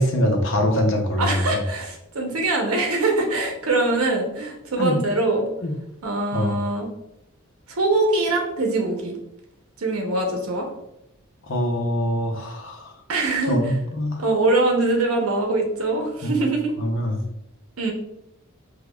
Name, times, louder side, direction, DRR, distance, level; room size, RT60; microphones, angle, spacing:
voice 1, 0.0-1.6 4.8-5.0 5.6-5.8 6.3-6.6 11.4-12.9 13.5-14.2 16.2-16.4 16.8-17.2, equal, 60° left, 3 dB, 0.6 m, -23 dB
voice 2, 1.2-5.4 6.0-6.9 7.7-9.2 9.8-10.7 13.1-13.6 14.2-16.7 17.8-17.9, right 2 dB, 90° right, 1 dB, 0.7 m, -23 dB
4.9 x 2.3 x 2.2 m, 0.84 s
head